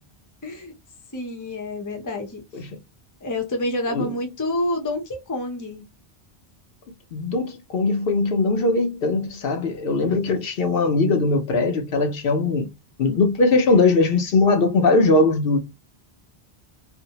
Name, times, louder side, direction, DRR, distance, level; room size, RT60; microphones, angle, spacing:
voice 1, 0.4-0.7 1.1-2.6 3.2-5.8, left 1 dB, 20° left, 0.6 m, -28 dB
voice 2, 7.1-12.7 13.0-15.6, left 3 dB, 70° left, 0.8 m, -20 dB
2.6 x 2.1 x 2.7 m
omnidirectional pair, 1.0 m